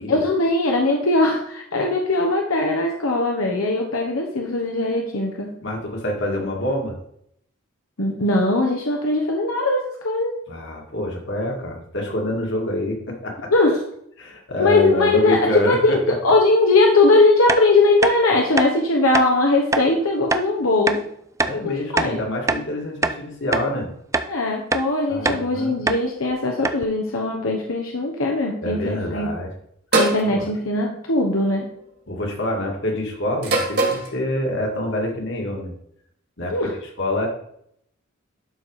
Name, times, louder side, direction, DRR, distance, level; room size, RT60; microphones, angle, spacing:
voice 1, 0.1-5.5 8.0-10.4 13.5-13.8 14.6-21.1 21.5-22.2 24.3-29.3 29.9-31.7 36.5-36.7, left 2 dB, 85° left, 1 dB, 1.1 m, -20 dB
voice 2, 5.6-7.0 10.5-13.5 14.2-16.2 21.4-23.9 25.1-25.7 28.6-29.5 30.2-30.5 32.1-35.7 36.4-36.7 37.0-37.3, left 1 dB, 60° left, 0 dB, 2.1 m, -26 dB
sound 1, 17.5-17.6 18.0-18.2 18.5-18.7 19.1-19.3 19.7-19.9 20.3-20.4 20.9-21.0 21.4-21.6 22.0-22.7 23.0-23.2 23.5-23.7 24.1-24.3 24.7-24.9 25.2-25.4 25.9-26.0 26.3-26.4 26.6-26.8, right 3 dB, 15° right, 0.4 m, -23 dB
sound 2, 29.9-30.3 31.4-31.8 33.4-34.1, right 2 dB, 50° right, 2.1 m, -21 dB
11.5 x 4.2 x 4.8 m, 0.71 s
head